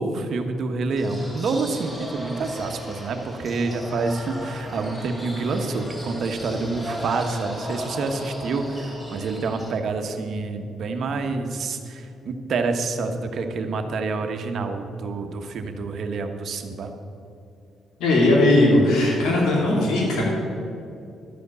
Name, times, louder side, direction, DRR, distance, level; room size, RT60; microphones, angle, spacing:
voice 1, 0.0-16.9, right 3 dB, 60° right, 6 dB, 1.0 m, -27 dB
sound 1, 1.0-9.7, equal, 15° left, 2.3 m, -36 dB
voice 2, 18.0-20.2, left 1 dB, 80° left, -3 dB, 2.6 m, -18 dB
12.0 x 5.1 x 8.1 m, 2.6 s
cardioid pair, 90°, 0 cm